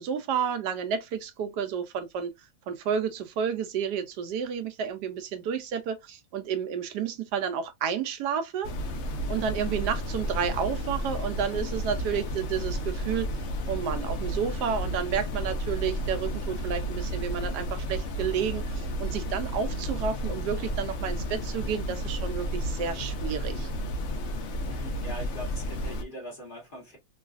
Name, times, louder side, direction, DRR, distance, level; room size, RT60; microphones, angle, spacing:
voice 1, 0.0-2.3 2.7-8.7 9.3-23.7, right 7 dB, 80° right, 1.2 m, -31 dB
sound 1, 8.6-26.0, equal, 65° left, 0.7 m, -32 dB
voice 2, 24.7-27.0, equal, 35° left, 1.0 m, -41 dB
3.1 x 2.4 x 2.3 m
omnidirectional pair, 1.8 m